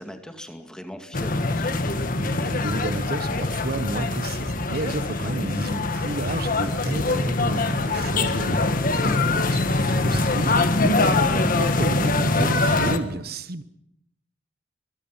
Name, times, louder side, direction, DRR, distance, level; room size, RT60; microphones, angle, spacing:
voice 1, 0.0-1.8, equal, 5° left, 5 dB, 2.3 m, -40 dB
sound 1, 1.1-13.0, left 2 dB, 50° left, 1.6 m, -23 dB
voice 2, 2.1-13.6, right 2 dB, 60° right, 12 dB, 1.1 m, -32 dB
23.5 x 22.0 x 5.8 m, 0.76 s
head